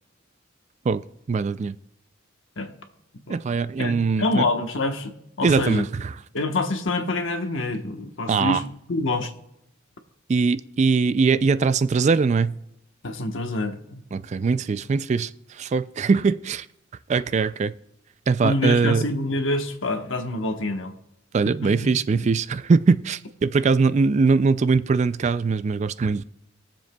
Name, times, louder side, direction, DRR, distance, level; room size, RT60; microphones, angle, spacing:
voice 1, 1.3-1.8 3.3-4.4 5.4-6.1 8.3-8.6 10.3-12.5 14.1-16.7 17.1-17.7 18.3-19.0 21.3-26.2, right 4 dB, 35° right, 14 dB, 0.3 m, -21 dB
voice 2, 3.8-5.8 6.3-9.3 13.0-14.0 18.4-20.9 21.6-21.7 22.1-22.3, left 2 dB, 70° left, 5 dB, 1.1 m, -26 dB
21.5 x 7.3 x 2.3 m, 0.80 s
head